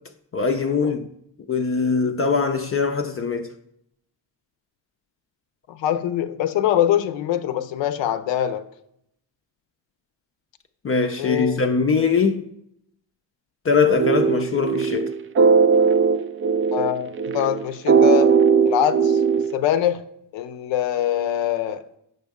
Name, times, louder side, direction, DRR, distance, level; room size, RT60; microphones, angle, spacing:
voice 1, 0.3-1.1 1.5-3.5 10.8-12.4 13.6-15.1, left 5 dB, 30° left, 0.5 m, -21 dB
voice 2, 5.7-8.6 11.2-11.6 16.7-18.3 18.6-19.2 19.5-20.0 20.3-21.8, left 11 dB, 65° left, 0.6 m, -23 dB
sound 1, 14.0-19.5, right 6 dB, 30° right, 0.4 m, -18 dB
7.4 x 5.2 x 3.6 m
supercardioid pair, 55°, 48 cm